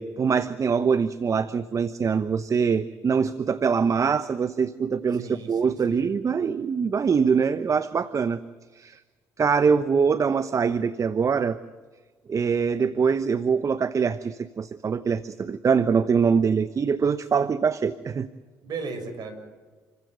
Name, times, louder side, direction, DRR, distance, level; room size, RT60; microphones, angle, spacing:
voice 1, 0.0-8.4 8.7-9.0 9.4-11.6 12.3-18.3, right 6 dB, 40° right, 13 dB, 1.0 m, -23 dB
voice 2, 5.1-6.0 18.6-19.4, right 4 dB, 55° right, 5 dB, 7.1 m, -36 dB
29.5 x 15.5 x 9.2 m, 1.4 s
hypercardioid pair, 55°, 8 cm